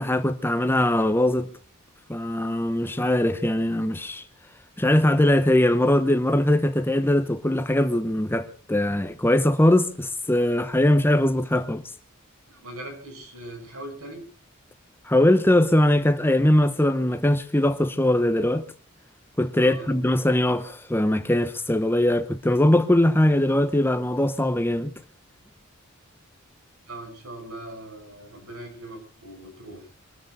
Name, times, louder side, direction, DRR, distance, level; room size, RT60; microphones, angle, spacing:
voice 1, 0.0-1.5 2.1-4.2 4.8-11.8 15.1-18.6 19.4-24.9, left 1 dB, 10° left, 0.8 m, -21 dB
voice 2, 12.5-14.2 19.5-20.0 26.9-29.9, right 1 dB, 85° right, 6.3 m, -40 dB
23.5 x 13.5 x 4.1 m
head